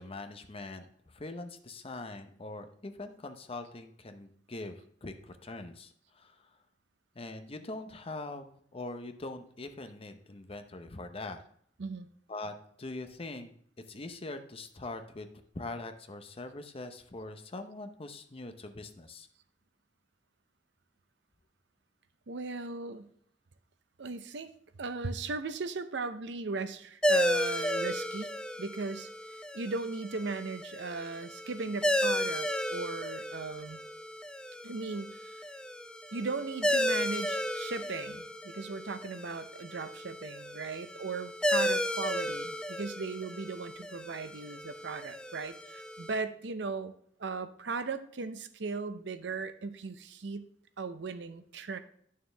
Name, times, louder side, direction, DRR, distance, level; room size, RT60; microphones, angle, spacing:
voice 1, 0.0-6.5 7.1-11.4 12.3-13.5 13.9-15.3 15.5-19.3, left 2 dB, 30° left, 7 dB, 0.7 m, -42 dB
voice 2, 22.3-23.1 24.0-24.5 24.8-28.3 28.6-33.8 34.6-35.4 36.1-46.9 47.2-50.5 50.8-51.8, right 4 dB, 70° right, 11 dB, 0.6 m, -37 dB
sound 1, 27.0-46.2, equal, 5° left, 0.4 m, -34 dB
9.2 x 6.5 x 3.4 m, 0.66 s
head